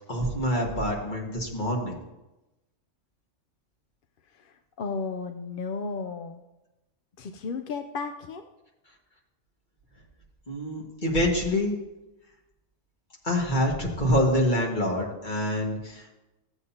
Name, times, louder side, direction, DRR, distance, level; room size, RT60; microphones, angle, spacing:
voice 1, 0.1-2.0 10.5-11.8 13.2-16.1, equal, 40° left, -1 dB, 1.9 m, -26 dB
voice 2, 4.3-6.4 7.2-8.5, left 4 dB, 60° left, 6 dB, 0.6 m, -34 dB
15.0 x 8.0 x 2.8 m, 1.0 s
omnidirectional pair, 1.3 m